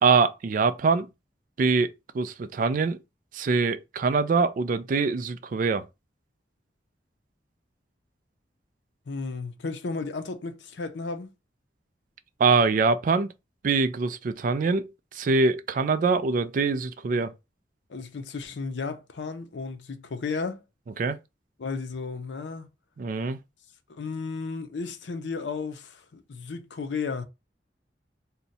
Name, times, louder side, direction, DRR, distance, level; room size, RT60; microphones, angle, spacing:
voice 1, 0.0-1.1 1.6-1.9 2.1-3.0 3.3-5.9 12.4-13.3 13.6-17.3 21.0-21.2 23.0-23.4, right 4 dB, 50° right, 0.3 m, -24 dB
voice 2, 9.1-11.3 17.9-20.6 21.6-22.7 23.9-27.3, left 4 dB, 85° left, 0.5 m, -34 dB
2.7 x 2.2 x 3.9 m
head